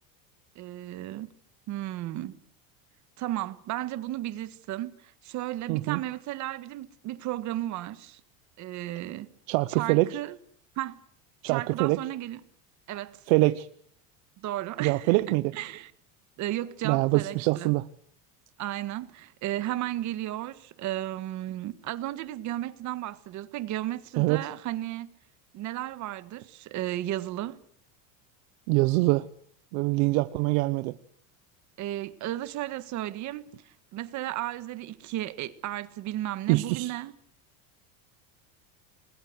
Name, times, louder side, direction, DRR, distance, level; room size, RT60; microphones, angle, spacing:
voice 1, 0.5-1.3 1.7-2.4 3.2-8.2 8.6-9.3 9.7-10.4 10.7-11.0 11.4-12.4 12.9-13.2 14.4-15.9 16.4-17.7 18.6-25.2 25.5-27.6 31.8-37.1, right 14 dB, 40° right, 1.6 m, -34 dB
voice 2, 5.7-6.0 9.5-10.1 11.4-12.0 13.3-13.7 14.8-15.5 16.8-17.8 24.2-24.4 28.7-29.3 29.7-30.9 36.5-36.9, right 21 dB, 75° right, 1.1 m, -24 dB
28.5 x 21.5 x 7.9 m
cardioid pair, 165°, 42 cm